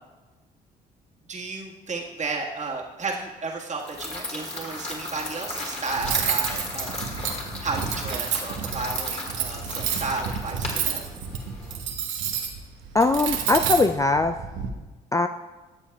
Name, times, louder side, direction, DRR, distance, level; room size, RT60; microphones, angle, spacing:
voice 1, 1.3-7.1 7.6-11.1, right 3 dB, 35° right, -1 dB, 1.6 m, -33 dB
sound 1, 3.8-11.7, left 2 dB, 30° left, 2.3 m, -35 dB
Cutlery silverware, 6.0-14.7, right 7 dB, 75° right, 1.0 m, -30 dB
voice 2, 12.9-14.4 15.1-15.3, left 3 dB, 15° left, 8 dB, 0.3 m, -20 dB
13.5 x 7.1 x 2.3 m, 1.2 s
hypercardioid pair, 55°, 20 cm